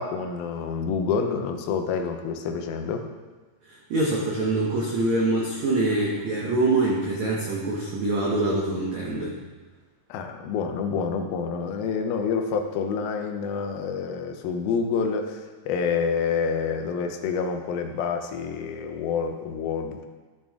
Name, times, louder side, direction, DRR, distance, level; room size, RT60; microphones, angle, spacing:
voice 1, 0.0-3.1 10.1-20.1, left 5 dB, 80° left, 5 dB, 2.2 m, -28 dB
voice 2, 3.7-9.3, right 2 dB, 75° right, -4 dB, 1.6 m, -25 dB
12.5 x 6.4 x 3.6 m, 1.3 s
omnidirectional pair, 4.9 m